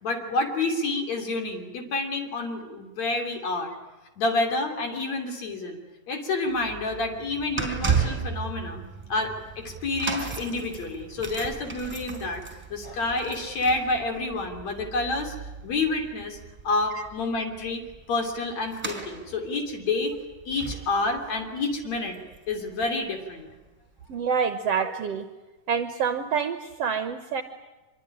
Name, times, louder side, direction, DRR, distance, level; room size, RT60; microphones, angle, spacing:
voice 1, 0.0-3.7 4.2-5.8 6.1-8.8 9.1-12.4 12.7-15.3 15.6-16.4 16.6-20.2 20.5-22.2 22.5-23.5 24.8-24.9, left 3 dB, 55° left, 4 dB, 4.3 m, -29 dB
sound 1, 6.5-22.8 23.1-23.3 24.1-24.2, right 5 dB, 10° right, 4.4 m, -35 dB
voice 2, 24.1-25.3 25.7-27.4, right 6 dB, 65° right, 9 dB, 1.8 m, -27 dB
25.0 x 23.0 x 10.0 m, 1.1 s
omnidirectional pair, 3.8 m